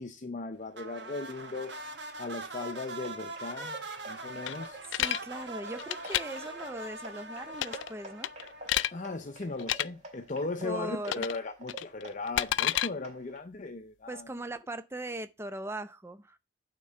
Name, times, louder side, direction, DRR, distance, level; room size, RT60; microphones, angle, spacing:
voice 1, 0.0-1.8 2.2-3.8 4.0-4.8 8.9-14.3, left 3 dB, 45° left, 0.7 m, -37 dB
sound 1, 0.7-9.2, right 2 dB, 70° right, 1.5 m, -42 dB
sound 2, 2.5-13.4, right 2 dB, 40° right, 1.9 m, -50 dB
sound 3, 4.5-5.2 5.8-6.2 7.5-7.9 8.2-8.9 9.6-9.9 11.1-11.4 11.7-12.9, left 12 dB, 85° left, 0.3 m, -30 dB
voice 2, 4.9-8.3 10.6-11.3 14.1-16.4, right 1 dB, 15° right, 0.6 m, -39 dB
9.0 x 3.8 x 6.4 m
head